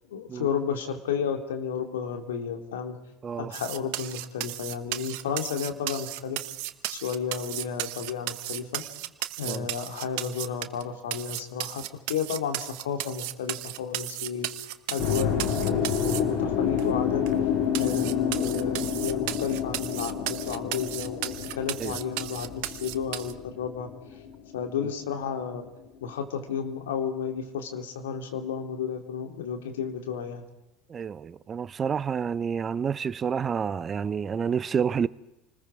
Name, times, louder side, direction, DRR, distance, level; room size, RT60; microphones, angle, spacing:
voice 1, 0.1-2.9 3.4-6.4 6.9-8.8 9.4-14.5 14.9-17.2 17.8-23.9 24.5-25.6 26.0-30.4, left 7 dB, 75° left, 2.7 m, -32 dB
voice 2, 3.2-3.5 9.4-9.7 21.8-22.0 30.9-35.1, right 7 dB, 30° right, 0.7 m, -29 dB
sound 1, 3.5-10.8 11.1-16.2 16.8-16.9 17.3-17.4 17.7-23.3, right 17 dB, 65° right, 1.1 m, -35 dB
sound 2, 15.0-25.1, left 7 dB, 60° left, 4.2 m, -29 dB
29.0 x 20.5 x 4.9 m
hypercardioid pair, 75°, 0 cm